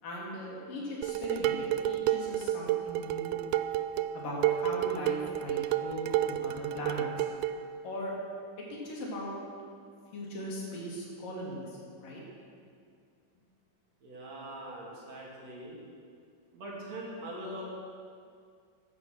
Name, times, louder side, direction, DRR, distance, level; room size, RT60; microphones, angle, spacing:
voice 1, 0.0-3.4 4.1-7.3 7.8-8.2 8.6-9.3 10.1-12.2, left 1 dB, 80° left, -3 dB, 4.5 m, -39 dB
Dishes pots and pans, 1.0-7.6, right 12 dB, 80° right, 1.9 m, -30 dB
voice 2, 14.0-15.8 16.5-17.6, right 1 dB, 55° right, -4 dB, 3.7 m, -42 dB
14.5 x 11.0 x 6.4 m, 2.3 s
omnidirectional pair, 3.8 m